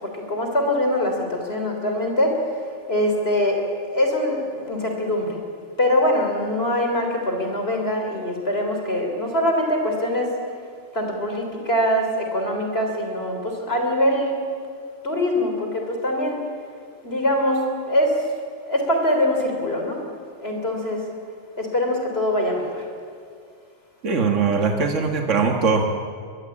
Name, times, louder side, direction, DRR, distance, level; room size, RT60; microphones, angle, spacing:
voice 1, 0.0-2.4 2.9-5.4 5.8-10.4 10.9-14.4 15.0-16.4 17.0-18.2 18.7-20.0 20.4-21.0 21.6-22.9, left 1 dB, 50° left, 3 dB, 3.7 m, -23 dB
voice 2, 24.0-25.8, right 5 dB, 75° right, 3 dB, 1.9 m, -21 dB
23.5 x 21.5 x 8.6 m, 2.2 s
omnidirectional pair, 1.3 m